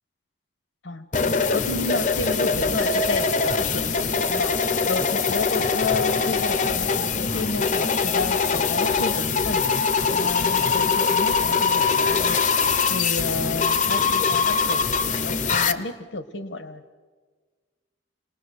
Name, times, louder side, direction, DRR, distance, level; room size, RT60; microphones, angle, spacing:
sound 1, 1.1-15.7, left 5 dB, 40° left, 0.7 m, -22 dB
voice 1, 1.5-9.7 10.1-12.4 12.9-14.9 15.2-17.0, left 2 dB, 80° left, 10 dB, 1.4 m, -31 dB
27.0 x 19.5 x 6.6 m, 1.5 s
head